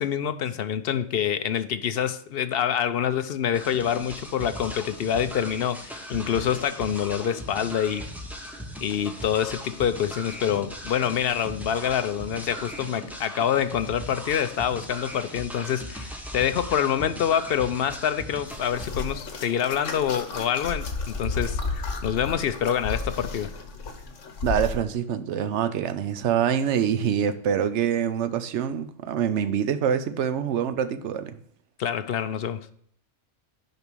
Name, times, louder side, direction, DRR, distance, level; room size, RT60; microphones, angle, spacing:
voice 1, 0.0-8.1 8.8-23.5 31.8-32.7, left 9 dB, 60° left, 0.7 m, -26 dB
sound 1, 3.5-18.9, equal, ahead, 1.0 m, -38 dB
sound 2, 18.5-24.8, left 4 dB, 85° left, 1.4 m, -32 dB
voice 2, 24.4-31.4, right 8 dB, 75° right, 1.0 m, -25 dB
6.7 x 5.2 x 6.0 m
omnidirectional pair, 1.2 m